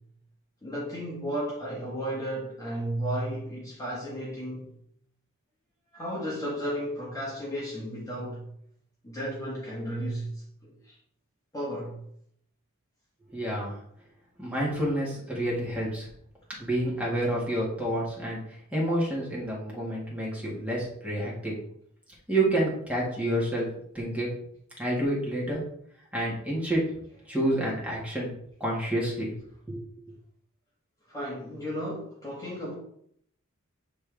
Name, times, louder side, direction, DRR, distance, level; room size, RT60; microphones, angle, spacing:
voice 1, 0.6-4.8 5.9-8.5 9.0-10.9 11.5-12.0 31.1-32.7, equal, 15° left, 1.5 m, -34 dB
voice 2, 13.3-13.8 14.4-16.1 16.6-18.4 18.7-21.6 22.3-23.7 23.9-24.3 24.8-25.6 26.1-26.8 27.3-28.3 28.6-29.3 29.7-29.8, right 1 dB, 5° right, 1.9 m, -28 dB
8.3 x 3.4 x 3.5 m
head